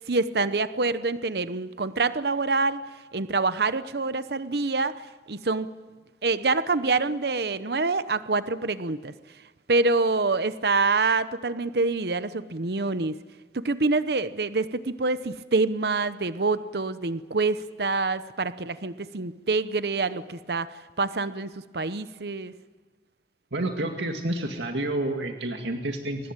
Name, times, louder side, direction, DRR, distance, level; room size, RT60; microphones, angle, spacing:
voice 1, 0.0-2.9 3.1-5.7 6.2-9.1 9.7-13.2 13.5-22.5, right 3 dB, 65° right, 14 dB, 0.9 m, -26 dB
voice 2, 23.5-26.3, right 1 dB, 85° right, 3 dB, 2.1 m, -29 dB
24.5 x 20.5 x 8.9 m, 1.3 s
head